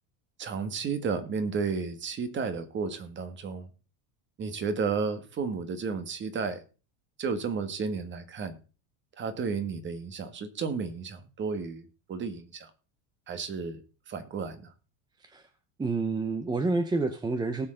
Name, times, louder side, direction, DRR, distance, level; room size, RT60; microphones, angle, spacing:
voice 1, 0.4-3.7 4.4-6.6 7.2-8.6 9.2-12.7 13.3-14.7, right 5 dB, 25° right, 1.6 m, -33 dB
voice 2, 15.8-17.7, right 3 dB, 10° right, 0.8 m, -29 dB
18.0 x 6.7 x 3.8 m
supercardioid pair, 145°, 42 cm